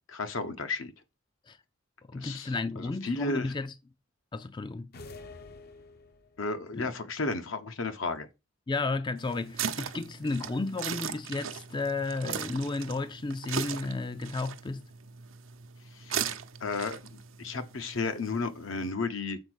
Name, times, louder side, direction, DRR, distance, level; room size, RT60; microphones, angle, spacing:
voice 1, 0.1-0.9 2.1-3.5 6.4-8.3 15.9-16.3 16.6-19.4, left 3 dB, 75° left, 1.0 m, -33 dB
voice 2, 2.1-3.7 4.3-4.9 6.7-6.8 8.7-14.8, left 3 dB, 25° left, 0.4 m, -33 dB
sound 1, 4.9-6.5, left 3 dB, 50° left, 0.7 m, -47 dB
sound 2, 9.2-18.9, right 8 dB, 85° right, 0.8 m, -38 dB
6.7 x 4.3 x 6.2 m
head